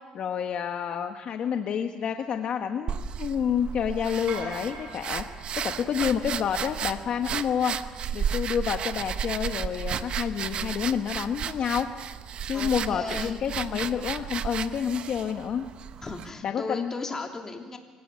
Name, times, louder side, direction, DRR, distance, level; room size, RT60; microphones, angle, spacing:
voice 1, 0.1-5.2 5.6-7.8 8.1-11.9 12.5-15.7 16.4-16.9, left 8 dB, 55° left, 5 dB, 1.2 m, -29 dB
sound 1, 2.9-16.3, right 7 dB, 55° right, 1.0 m, -33 dB
sound 2, 4.3-6.6, right 3 dB, 70° right, 7.8 m, -42 dB
voice 2, 12.5-13.4 16.0-17.8, left 3 dB, 25° left, 2 dB, 3.1 m, -36 dB
24.5 x 17.5 x 8.3 m, 1.4 s
cardioid pair, 105°, 2 cm